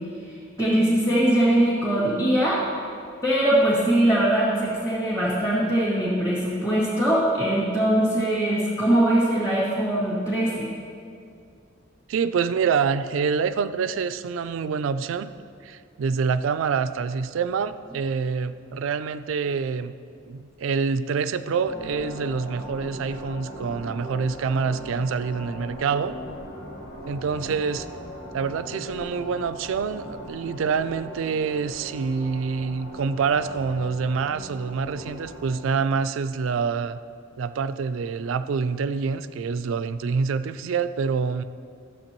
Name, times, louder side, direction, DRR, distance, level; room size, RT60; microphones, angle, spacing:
voice 1, 0.3-2.6 3.2-10.7, right 1 dB, 15° left, -11 dB, 2.0 m, -22 dB
voice 2, 12.1-15.3 15.6-19.9 20.3-26.2 27.0-27.9 28.3-37.0 37.4-41.4, right 5 dB, 80° right, 13 dB, 0.3 m, -26 dB
sound 1, 21.6-35.6, equal, 90° left, 2.1 m, -39 dB
13.0 x 7.5 x 3.0 m, 2.3 s
head